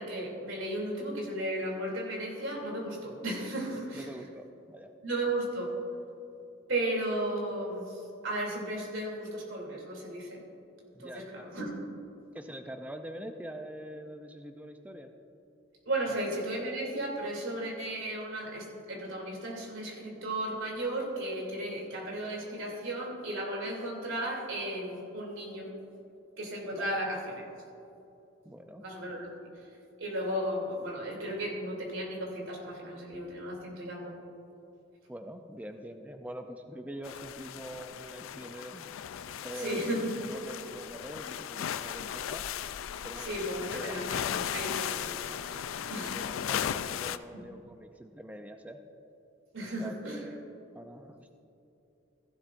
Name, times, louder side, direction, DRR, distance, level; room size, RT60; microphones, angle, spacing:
voice 1, 0.0-4.1 5.0-5.7 6.7-10.4 11.0-11.7 15.8-25.7 26.4-27.4 28.8-29.3 30.0-34.2 39.5-40.1 43.2-46.2 47.3-47.4 49.5-50.2, right 1 dB, 75° right, -1 dB, 2.8 m, -35 dB
voice 2, 3.9-4.9 10.9-11.5 12.3-15.1 16.1-16.2 26.7-26.9 28.4-28.8 35.1-38.9 39.4-42.4 43.0-43.9 45.8-48.8 49.8-50.4 50.7-51.3, equal, 5° right, 6 dB, 0.4 m, -44 dB
sound 1, 37.0-47.2, left 9 dB, 80° left, 0.4 m, -36 dB
15.5 x 11.5 x 2.5 m, 2.8 s
head